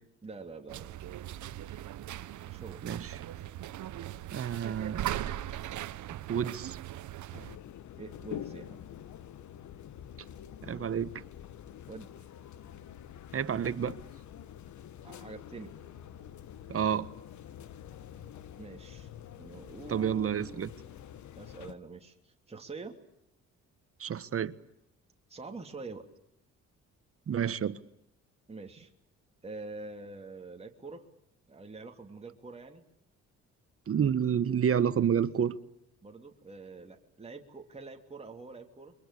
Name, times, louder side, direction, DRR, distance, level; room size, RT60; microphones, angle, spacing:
voice 1, 0.2-0.9 2.5-2.8 7.9-8.8 11.9-12.1 15.0-15.8 18.6-19.1 19.4-20.6 21.3-23.0 25.3-26.1 28.5-28.9 29.4-31.1 31.5-32.8 36.0-38.9, right 3 dB, 20° right, 3.1 m, -45 dB
sound 1, 0.7-7.6, right 13 dB, 70° right, 1.2 m, -39 dB
voice 2, 2.8-3.2 4.3-5.1 6.3-6.8 10.6-11.2 13.3-13.9 16.7-17.1 19.9-20.7 24.0-24.5 27.3-27.8 33.9-35.5, right 8 dB, 50° right, 1.5 m, -29 dB
sound 2, 7.3-21.7, left 10 dB, 70° left, 1.5 m, -47 dB
29.0 x 24.0 x 8.5 m
cardioid pair, 90°, 30 cm